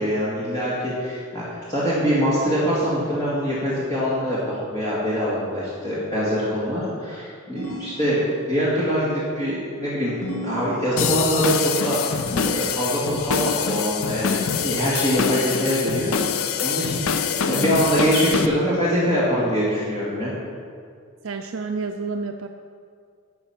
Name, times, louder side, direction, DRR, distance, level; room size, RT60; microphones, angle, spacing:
voice 1, 0.0-8.2 8.4-10.1 10.4-20.3, equal, 20° left, -9 dB, 2.0 m, -24 dB
sound 1, 7.6-8.7 10.2-11.4 12.3-13.1 14.4-15.3, equal, 90° left, 2.2 m, -36 dB
sound 2, 11.0-18.5, left 7 dB, 75° left, 0.5 m, -25 dB
voice 2, 21.2-22.5, right 4 dB, 65° right, 4 dB, 0.5 m, -29 dB
11.5 x 7.0 x 5.8 m, 2.3 s
head